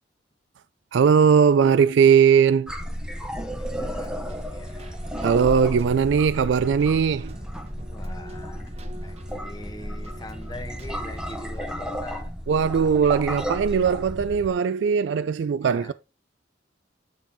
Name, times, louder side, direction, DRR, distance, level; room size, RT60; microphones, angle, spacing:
voice 1, 0.9-2.7 5.2-7.3 12.5-15.9, right 7 dB, 70° right, 0.3 m, -19 dB
sound 1, 2.7-14.5, equal, 5° right, 0.9 m, -33 dB
voice 2, 3.1-5.0 7.9-12.3 12.6-12.9 15.6-15.9, left 1 dB, 20° left, 1.1 m, -43 dB
Keyboard (musical), 3.8-11.8, right 1 dB, 35° right, 0.9 m, -47 dB
9.1 x 4.5 x 3.6 m
head